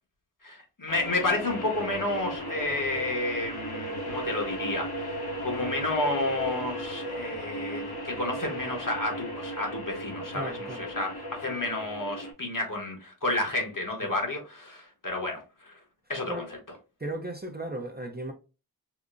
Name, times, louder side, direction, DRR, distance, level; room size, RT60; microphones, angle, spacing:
voice 1, 0.4-10.5 10.8-15.8 16.1-16.5, left 2 dB, 55° left, 1.1 m, -31 dB
sound 1, 0.9-12.3, right 1 dB, 70° left, 0.8 m, -36 dB
voice 2, 10.3-10.9 14.0-14.2 16.3-16.5 17.0-18.3, right 1 dB, 25° right, 0.5 m, -36 dB
4.9 x 2.1 x 2.4 m
wide cardioid pair, 50°, 39 cm